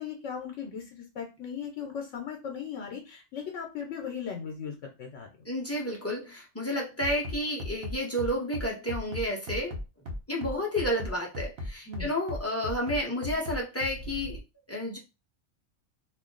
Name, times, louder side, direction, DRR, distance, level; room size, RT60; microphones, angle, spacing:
voice 1, 0.0-5.3 11.9-12.1, left 7 dB, 75° left, 2 dB, 1.0 m, -38 dB
voice 2, 5.4-9.8 10.3-14.4 14.7-15.0, equal, 20° left, -2 dB, 0.4 m, -31 dB
Bass drum, 7.0-14.4, left 1 dB, 65° right, 1.0 m, -36 dB
2.5 x 2.3 x 3.7 m, 0.27 s
omnidirectional pair, 1.3 m